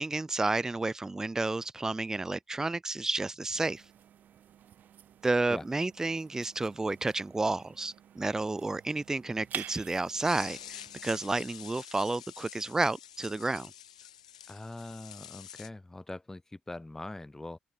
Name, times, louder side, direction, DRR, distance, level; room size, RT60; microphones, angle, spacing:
voice 1, 0.0-3.8 5.2-13.7, right 2 dB, 15° right, 0.4 m, -31 dB
sound 1, 3.5-11.3, right 10 dB, 50° right, 1.7 m, -48 dB
sound 2, 10.2-15.7, left 10 dB, 80° left, 0.8 m, -47 dB
voice 2, 14.5-17.6, left 2 dB, 15° left, 0.7 m, -42 dB
open air
figure-of-eight pair, 45°, 4 cm